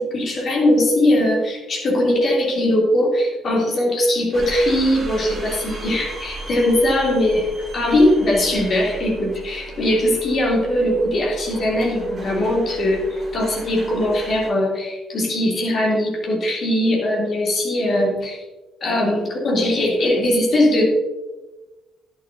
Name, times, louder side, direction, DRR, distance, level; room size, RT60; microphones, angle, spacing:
voice 1, 0.0-7.5 7.7-18.4 18.8-20.8, left 1 dB, 45° left, -2 dB, 3.2 m, -20 dB
sound 1, 4.3-14.5, right 3 dB, 40° right, 3.5 m, -36 dB
11.0 x 11.0 x 2.8 m, 1.1 s
figure-of-eight pair, 40°, 0 cm